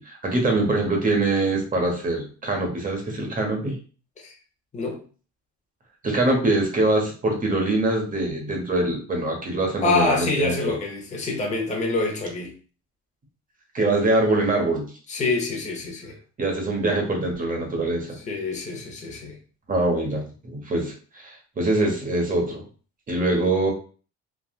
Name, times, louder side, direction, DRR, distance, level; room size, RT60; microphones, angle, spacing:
voice 1, 0.0-3.8 6.0-10.7 13.7-14.9 16.4-18.2 19.7-22.6 23.1-23.7, right 2 dB, 30° right, 1.0 m, -23 dB
voice 2, 9.8-12.5 15.1-16.2 18.2-19.4, left 3 dB, 25° left, 0.8 m, -26 dB
3.4 x 2.4 x 2.4 m
cardioid pair, 110°, 29 cm